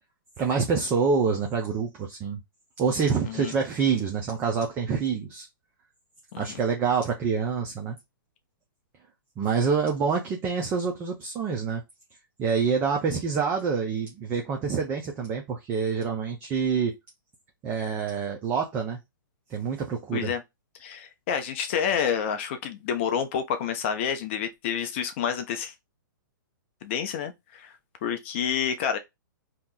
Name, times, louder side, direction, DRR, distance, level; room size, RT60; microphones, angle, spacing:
voice 1, 0.4-2.4 2.8-5.5 6.4-8.0 9.4-11.8 12.4-16.9 17.6-19.0 19.5-20.3, right 5 dB, 15° right, 0.4 m, -26 dB
voice 2, 20.8-25.7 26.8-27.7 28.0-29.0, left 8 dB, 35° left, 0.5 m, -29 dB
2.8 x 2.4 x 3.6 m
hypercardioid pair, 155°, 11 cm